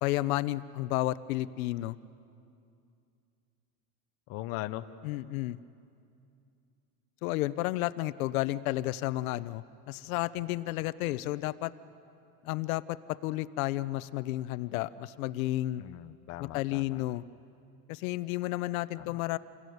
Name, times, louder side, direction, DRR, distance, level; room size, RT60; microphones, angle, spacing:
voice 1, 0.0-2.0 5.0-5.6 7.2-11.7 12.4-13.0 13.2-15.8 16.4-17.2 17.9-19.4, left 17 dB, 60° left, 15 dB, 0.8 m, -32 dB
voice 2, 4.3-4.9 15.8-17.0 19.0-19.2, left 16 dB, 30° left, 9 dB, 0.7 m, -40 dB
28.0 x 21.5 x 9.4 m, 2.5 s
supercardioid pair, 165°, 47 cm